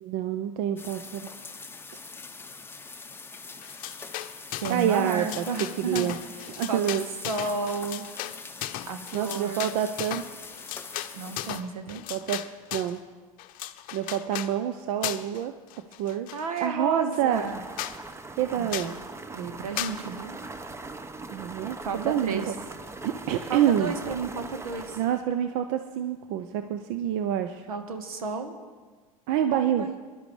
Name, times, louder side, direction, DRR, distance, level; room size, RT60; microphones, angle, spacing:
voice 1, 0.0-1.3 4.7-5.4 5.8-6.2 6.5-7.0 9.1-10.2 12.1-13.0 13.9-15.5 16.0-16.3 16.6-17.5 18.4-19.0 19.3-19.4 21.3-22.5 23.0-23.9 25.0-27.6 29.3-29.9, right 10 dB, 60° right, 8 dB, 0.7 m, -27 dB
sound 1, 0.8-11.6, left 4 dB, 10° left, 0.9 m, -43 dB
sound 2, 3.6-4.9 5.1-13.0 13.4-14.5 15.0-15.4 15.7-16.7 17.1-17.2 17.5-17.6 17.8-18.0 18.7-19.0 19.8-20.0, left 14 dB, 50° left, 0.7 m, -36 dB
voice 2, 4.6-6.1 6.7-7.0 7.2-8.1 8.9-9.7 11.1-12.0 16.3-17.6 18.6-18.7 19.3-20.3 21.8-22.5 23.5-25.0 27.7-28.5 29.5-30.0, right 4 dB, 80° right, 6 dB, 1.5 m, -32 dB
sound 3, 17.3-25.2, right 3 dB, 15° right, 0.9 m, -40 dB
23.5 x 11.5 x 3.3 m, 1.4 s
hypercardioid pair, 80°, 18 cm